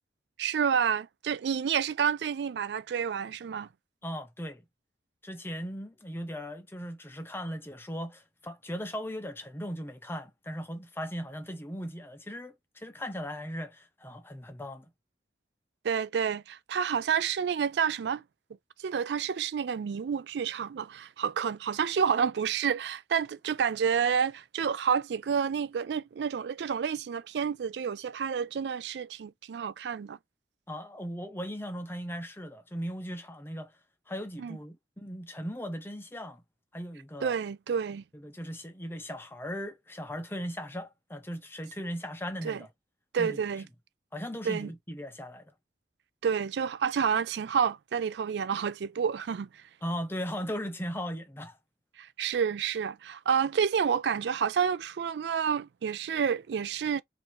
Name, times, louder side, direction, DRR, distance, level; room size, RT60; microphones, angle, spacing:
voice 1, 0.4-3.7 15.8-18.2 18.8-30.2 34.4-34.6 37.2-38.0 42.4-42.6 43.1-43.6 44.5-44.7 46.2-49.5 52.0-57.0, right 7 dB, 70° right, 0.4 m, -29 dB
voice 2, 4.0-4.6 5.2-14.9 30.7-33.7 34.1-36.4 36.7-37.3 38.1-42.7 43.2-43.4 44.1-45.5 49.8-51.6, equal, 15° left, 0.7 m, -38 dB
4.3 x 2.7 x 3.0 m
head